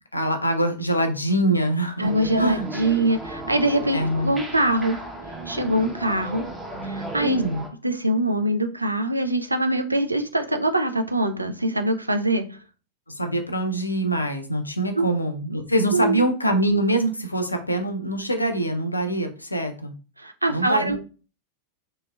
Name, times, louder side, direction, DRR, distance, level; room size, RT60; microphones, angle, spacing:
voice 1, 0.1-2.1 2.4-2.7 3.9-4.3 7.2-7.6 13.1-19.9 20.5-21.0, right 1 dB, 85° left, 5 dB, 0.5 m, -24 dB
sound 1, 2.0-7.7, right 2 dB, 10° right, 0.7 m, -35 dB
voice 2, 2.0-5.0 5.5-6.5 6.8-7.4 7.8-12.6 15.0-15.1 15.9-16.2 20.2-21.0, right 1 dB, 85° right, 6 dB, 0.4 m, -23 dB
3.0 x 2.8 x 2.2 m, 0.35 s
figure-of-eight pair, 90°, 0 cm